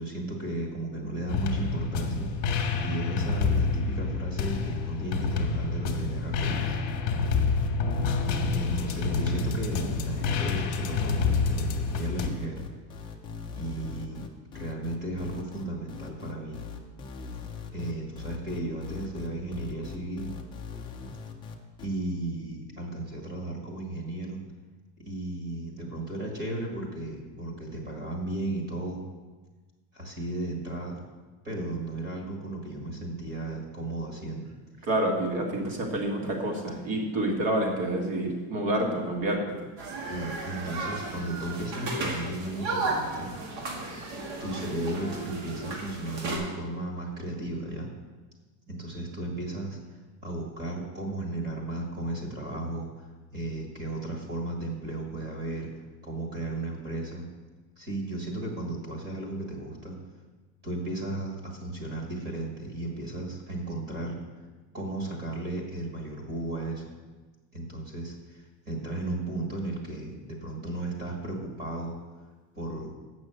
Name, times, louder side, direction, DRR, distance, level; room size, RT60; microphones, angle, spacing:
voice 1, 0.0-6.8 8.5-12.7 13.5-14.3 14.5-16.6 17.7-20.3 21.8-24.4 25.0-29.0 29.9-31.0 31.4-34.5 34.8-34.9 40.1-43.3 44.4-47.9 48.7-49.8 50.2-55.7 56.0-57.3 57.8-60.0 60.6-64.2 64.7-66.8 67.5-71.9 72.5-72.9, right 2 dB, 25° right, 0 dB, 1.6 m, -35 dB
sound 1, 1.3-12.3, left 4 dB, 45° left, 1.1 m, -28 dB
sound 2, 6.5-21.9, left 6 dB, 10° left, 0.3 m, -40 dB
voice 2, 9.0-9.3 34.8-39.6, right 1 dB, 50° right, 1 dB, 1.9 m, -28 dB
sound 3, 39.8-46.4, right 2 dB, 90° right, 2.3 m, -34 dB
7.6 x 6.3 x 7.6 m, 1.3 s
cardioid pair, 180°, 44 cm